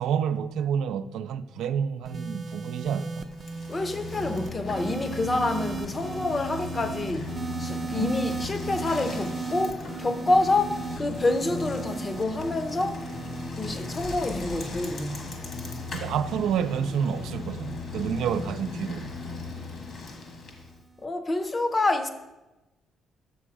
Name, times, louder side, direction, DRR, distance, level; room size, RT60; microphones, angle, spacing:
voice 1, 0.0-3.3 7.9-8.1 15.9-19.1, right 8 dB, 80° right, 0.4 m, -29 dB
sound 1, 2.0-18.5 19.4-19.8, right 5 dB, 30° right, 0.5 m, -38 dB
Bicycle, 3.3-20.8, left 3 dB, 55° left, 1.5 m, -37 dB
voice 2, 3.7-7.3 7.6-13.0 13.6-15.3 21.0-22.1, left 2 dB, 30° left, 0.7 m, -27 dB
6.8 x 6.3 x 4.8 m
cardioid pair, 90°, 0 cm